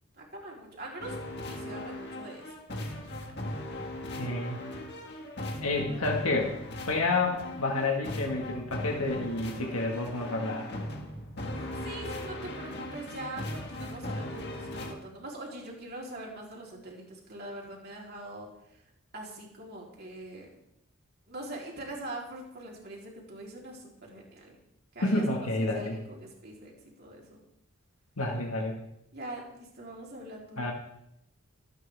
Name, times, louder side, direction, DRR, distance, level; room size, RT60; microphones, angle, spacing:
voice 1, 0.2-2.4 11.5-18.8 19.1-20.5 21.3-24.5 24.9-27.4 29.1-30.6, right 1 dB, 45° right, -2 dB, 3.6 m, -43 dB
sound 1, 1.0-14.9, left 1 dB, 50° left, 1.9 m, -38 dB
voice 2, 4.1-4.6 5.6-6.5 6.9-10.7 25.0-26.0 28.2-28.8 30.6-30.7, left 2 dB, 80° left, 0 dB, 1.7 m, -29 dB
23.5 x 9.2 x 3.5 m, 0.80 s
head